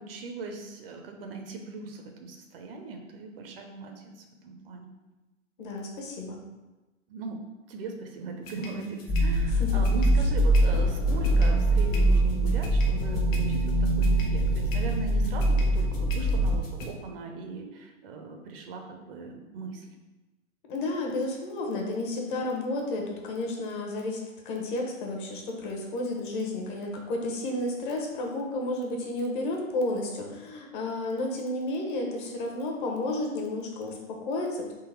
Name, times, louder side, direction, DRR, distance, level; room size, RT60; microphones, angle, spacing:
voice 1, 0.0-4.9 7.1-7.4 7.7-19.9, right 3 dB, 45° right, 3 dB, 0.7 m, -39 dB
voice 2, 5.6-6.4 9.5-9.8 20.7-34.8, left 2 dB, 40° left, 0 dB, 1.0 m, -32 dB
sound 1, 8.4-16.9, left 1 dB, 70° left, 1.2 m, -42 dB
sound 2, 9.1-16.6, right 1 dB, 15° left, 0.7 m, -23 dB
3.9 x 3.1 x 4.4 m, 1.1 s
hypercardioid pair, 125°, 41 cm